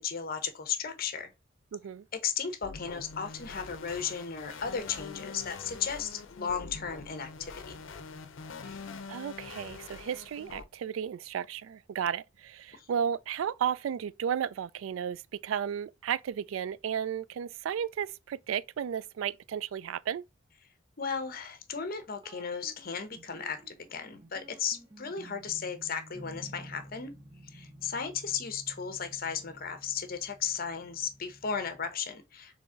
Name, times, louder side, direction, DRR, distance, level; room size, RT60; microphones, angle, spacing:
voice 1, 0.0-1.3 2.2-7.8 8.6-8.8 12.8-12.9 21.0-27.1 27.5-32.6, left 6 dB, 50° left, 0.8 m, -35 dB
voice 2, 1.7-2.1 9.1-20.2, right 8 dB, 85° right, 0.3 m, -33 dB
sound 1, 2.6-10.6, left 4 dB, 80° left, 0.6 m, -44 dB
sound 2, 22.2-32.0, right 1 dB, 25° right, 0.7 m, -52 dB
3.9 x 3.4 x 3.8 m
head